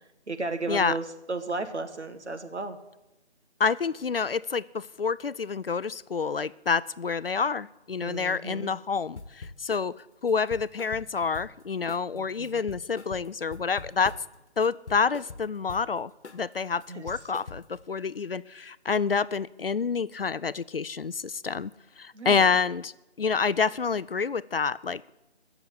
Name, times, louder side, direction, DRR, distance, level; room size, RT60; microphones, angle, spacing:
voice 1, 0.3-2.8 8.0-8.7 12.1-12.6 16.9-17.0 22.1-22.5, right 3 dB, 75° right, 8 dB, 1.9 m, -34 dB
voice 2, 3.6-9.9 10.2-14.1 14.6-21.7 22.0-22.9 23.2-25.0, left 5 dB, 60° left, 18 dB, 0.4 m, -28 dB
sound 1, 9.2-9.9 10.3-11.6 11.9-12.2 12.4-14.4 14.6-15.9 16.2-16.5 16.8-17.8, left 4 dB, 75° left, 1.3 m, -43 dB
15.0 x 7.2 x 9.5 m, 0.98 s
figure-of-eight pair, 175°, 34 cm